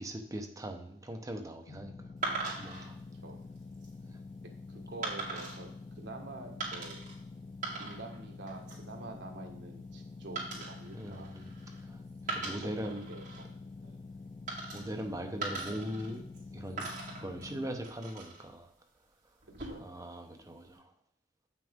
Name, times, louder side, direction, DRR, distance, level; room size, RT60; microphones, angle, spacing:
voice 1, 0.0-2.1 2.6-3.0 4.1-4.2 10.9-11.4 11.8-13.1 14.7-16.2 16.5-18.7 19.8-20.9, right 1 dB, 15° right, 4 dB, 0.8 m, -40 dB
sound 1, 1.7-17.7, left 3 dB, 30° left, 0.3 m, -47 dB
sound 2, 2.2-2.9 3.6-3.9 5.0-5.6 6.6-7.1 7.5-8.2 8.5-8.9 10.4-11.8 12.2-13.4 14.5-15.0 15.4-16.4 16.8-18.4 19.4-20.0, right 3 dB, 45° right, 2.4 m, -40 dB
voice 2, 4.7-7.0 7.8-11.3 12.4-12.7 13.1-13.5 13.8-14.0 19.6-19.9, right 2 dB, 65° right, 2 dB, 1.4 m, -47 dB
8.2 x 6.1 x 3.6 m, 0.70 s
head